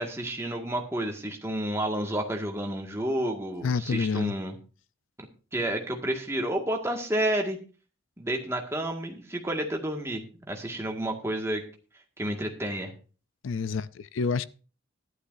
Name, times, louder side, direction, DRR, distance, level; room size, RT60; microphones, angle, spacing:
voice 1, 0.0-4.6 5.5-7.6 8.2-11.6 12.2-12.9, right 1 dB, 15° right, 1.9 m, -30 dB
voice 2, 3.6-4.3 13.4-14.5, left 5 dB, 75° left, 0.4 m, -28 dB
14.0 x 11.5 x 2.6 m
head